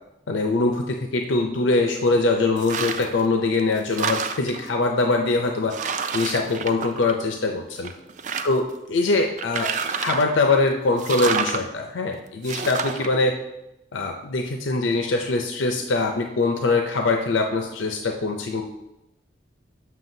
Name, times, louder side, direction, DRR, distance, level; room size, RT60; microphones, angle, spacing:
voice 1, 0.3-5.7 6.1-7.9 8.4-8.6 8.9-9.7 10.0-13.4 13.9-18.6, left 3 dB, 90° left, 3 dB, 0.5 m, -23 dB
sound 1, 2.6-3.2 3.6-4.7 5.3-5.4 5.7-7.4 7.8-8.7 9.4-10.4 11.0-11.6 12.4-13.1, right 6 dB, 40° right, 0.3 m, -28 dB
7.5 x 5.8 x 2.7 m, 0.91 s
head